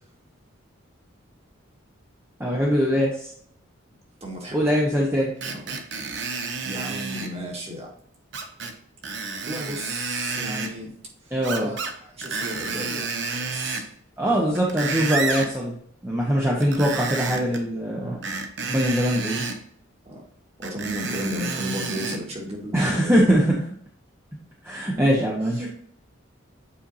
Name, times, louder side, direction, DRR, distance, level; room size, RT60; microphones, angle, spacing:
voice 1, 2.4-3.3 4.5-5.3 11.3-11.7 14.2-15.8 16.0-18.2 18.6-19.5 22.7-23.7 24.6-25.7, equal, 10° right, -4 dB, 1.0 m, -22 dB
voice 2, 4.2-4.7 5.4-6.4 6.6-7.9 9.5-10.9 11.2-13.9 14.2-14.6 16.3-16.5 17.9-18.3 20.1-20.2 20.6-23.1 25.4-25.7, equal, 30° right, -1 dB, 1.8 m, -35 dB
Screech, 5.4-7.3 8.3-8.7 9.0-10.7 11.4-11.9 12.2-13.9 14.4-15.5 16.6-17.6 18.2-19.6 20.6-22.2 22.8-22.9, right 4 dB, 60° right, 0.9 m, -30 dB
8.6 x 4.5 x 2.7 m, 0.63 s
head